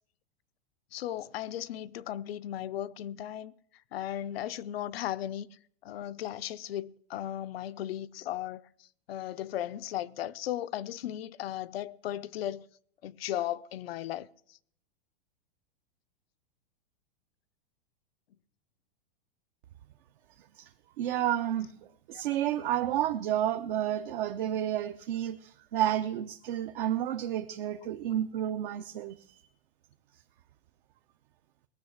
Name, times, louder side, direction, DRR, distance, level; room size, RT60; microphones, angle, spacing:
voice 1, 0.9-3.5 3.9-5.5 5.8-8.6 9.1-12.7 13.0-14.3 22.1-22.2, left 12 dB, 75° left, 0.7 m, -36 dB
voice 2, 21.0-21.7 22.1-29.4, right 11 dB, 55° right, 0.8 m, -31 dB
18.5 x 6.4 x 8.7 m
supercardioid pair, 155°, 30 cm